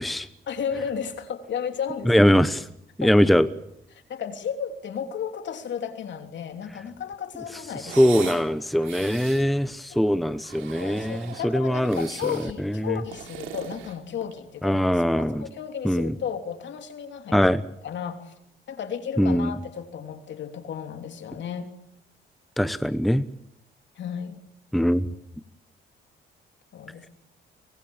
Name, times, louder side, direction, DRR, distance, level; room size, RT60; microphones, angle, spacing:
voice 1, 0.4-2.3 3.0-3.1 3.9-8.3 9.9-10.0 10.8-17.4 17.8-18.3 18.7-21.7 24.0-24.4 26.7-27.1, left 7 dB, 65° left, 6 dB, 3.2 m, -34 dB
voice 2, 2.1-2.6 3.0-3.5 8.0-12.1 12.8-13.0 14.6-15.5 15.8-16.1 17.3-17.6 19.2-19.5 22.6-23.2 24.7-25.1, equal, ahead, 13 dB, 0.9 m, -21 dB
sound 1, 7.8-8.5 8.8-9.5 10.3-11.5 11.9-12.5 13.0-14.5, right 10 dB, 85° right, 3.0 m, -40 dB
24.0 x 20.0 x 7.3 m, 0.75 s
cardioid pair, 90°, 20 cm